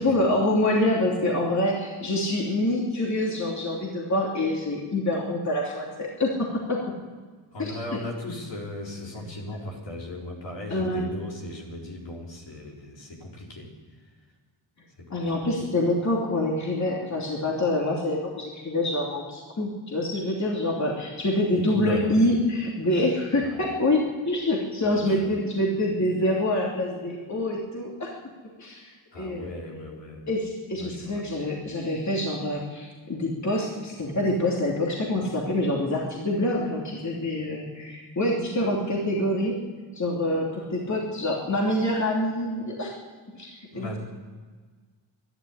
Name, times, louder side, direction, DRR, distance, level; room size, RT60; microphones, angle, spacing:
voice 1, 0.0-6.8 7.6-7.7 9.2-9.3 10.7-11.1 15.1-28.1 28.6-29.5 30.3-39.6 39.9-42.9 43.4-43.9, left 1 dB, 35° left, -2 dB, 3.0 m, -26 dB
voice 2, 7.5-13.7 15.0-15.3 15.6-15.7 21.7-22.2 23.4-23.7 24.9-25.3 29.1-30.3 30.8-31.5 43.7-44.0, left 1 dB, 65° left, -2 dB, 4.4 m, -37 dB
12.0 x 11.5 x 9.9 m, 1.5 s
cardioid pair, 70°, 47 cm